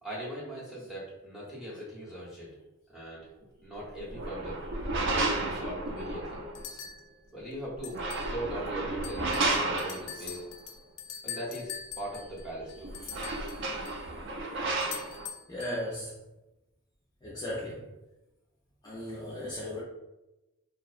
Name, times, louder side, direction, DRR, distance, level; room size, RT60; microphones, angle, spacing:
voice 1, 0.0-2.5 2.9-3.3 3.6-4.7 5.1-6.4 7.3-9.3 9.7-10.5 11.2-12.9, right 1 dB, ahead, -7 dB, 0.8 m, -40 dB
sound 1, 4.0-6.6 7.8-10.4 12.4-12.5 12.8-15.3, right 2 dB, 55° right, 0.3 m, -32 dB
sound 2, 6.0-6.1 6.5-7.0 7.8-8.3 8.7-8.8 9.0-14.0 14.8-15.8, left 8 dB, 80° left, 0.4 m, -43 dB
voice 2, 15.5-16.2 17.2-17.9 18.8-19.8, left 1 dB, 15° left, -8 dB, 0.4 m, -37 dB
2.6 x 2.0 x 2.4 m, 0.97 s
head